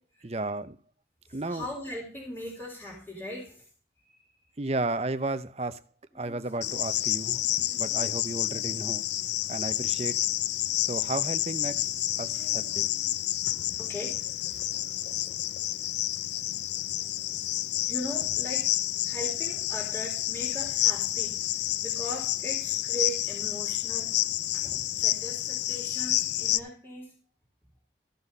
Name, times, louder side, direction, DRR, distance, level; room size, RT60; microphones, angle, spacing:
voice 1, 0.2-0.8 1.3-1.7 4.6-5.8 6.1-7.4 7.8-9.0 9.5-10.2 10.8-12.9, right 2 dB, 35° right, 0.7 m, -33 dB
voice 2, 1.3-3.7 4.0-4.2 6.1-6.8 7.3-8.1 8.5-8.6 12.3-13.1 13.8-14.6 17.8-18.7 19.0-24.1 24.5-27.1, equal, 10° left, 3.6 m, -40 dB
Cricket, 6.6-26.6, left 14 dB, 85° left, 0.5 m, -29 dB
14.5 x 6.1 x 5.4 m
head